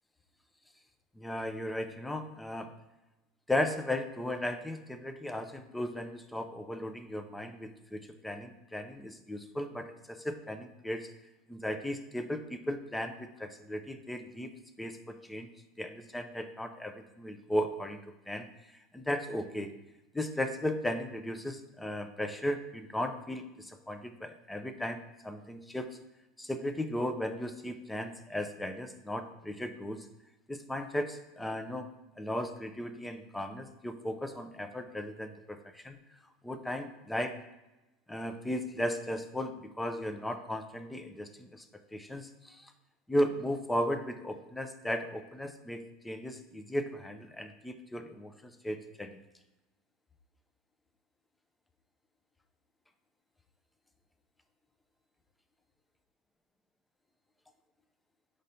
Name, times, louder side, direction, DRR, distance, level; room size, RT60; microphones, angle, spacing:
voice 1, 1.2-2.7 3.5-11.1 11.5-14.5 14.8-15.5 15.8-18.0 18.3-18.5 18.9-19.7 20.1-26.0 26.4-30.1 30.5-36.0 36.4-37.4 38.1-41.6 41.9-42.7 43.1-49.2, left 1 dB, 10° left, 8 dB, 0.6 m, -36 dB
5.1 x 4.1 x 5.5 m, 1.0 s
supercardioid pair, 100°, 0 cm